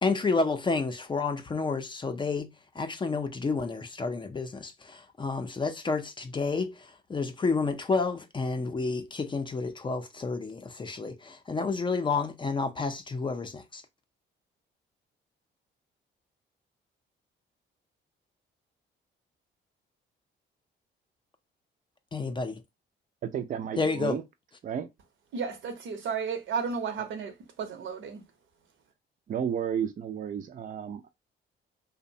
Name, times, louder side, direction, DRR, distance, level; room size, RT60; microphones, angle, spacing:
voice 1, 0.0-13.8 22.1-22.6 23.8-24.2, left 4 dB, 25° left, 0.4 m, -30 dB
voice 2, 23.2-24.2 24.6-24.9 29.3-31.1, right 8 dB, 40° right, 0.4 m, -32 dB
voice 3, 25.3-28.2, right 6 dB, 75° right, 0.8 m, -33 dB
2.7 x 2.1 x 2.6 m
cardioid pair, 90°, 20 cm